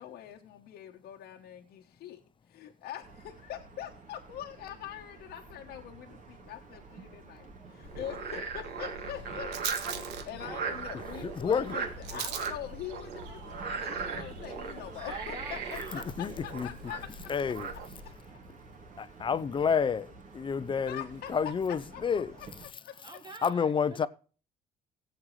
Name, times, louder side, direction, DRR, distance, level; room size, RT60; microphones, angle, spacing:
voice 1, 0.0-2.2 2.5-17.8 20.9-23.0, left 11 dB, 75° left, 1.2 m, -44 dB
sound 1, 3.0-22.6, right 4 dB, 50° right, 2.8 m, -50 dB
Rattle, 6.5-16.4, right 10 dB, 90° right, 1.3 m, -45 dB
Frog, 7.8-18.1, right 4 dB, 70° right, 2.9 m, -39 dB
voice 2, 15.1-16.0 23.0-24.1, right 3 dB, 25° right, 1.1 m, -45 dB
voice 3, 16.2-16.7 17.3-17.7 19.0-20.1 20.3-21.0 21.3-22.3 23.4-24.1, left 6 dB, 30° left, 0.7 m, -29 dB
17.5 x 7.9 x 3.2 m
cardioid pair, 110°, 17 cm